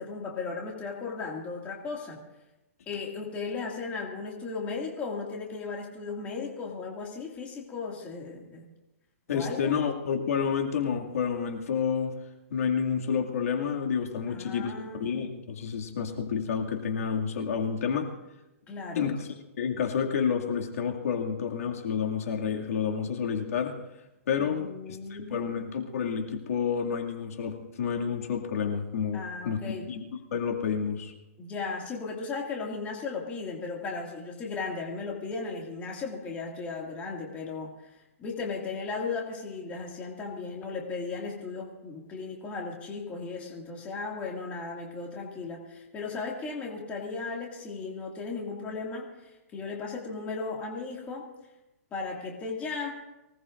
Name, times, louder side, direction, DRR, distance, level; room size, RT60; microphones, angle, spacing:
voice 1, 0.0-2.2 2.9-8.6 9.3-9.8 14.3-15.1 18.7-19.1 24.4-25.5 29.1-29.9 31.4-51.3 51.9-52.9, left 4 dB, 15° left, -1 dB, 2.3 m, -36 dB
voice 2, 9.3-12.1 12.5-14.7 15.0-18.1 19.0-19.3 19.6-23.8 24.3-30.0 30.3-31.1, left 6 dB, 65° left, 1 dB, 2.4 m, -29 dB
24.5 x 18.5 x 2.6 m, 0.98 s
hypercardioid pair, 160°, 9 cm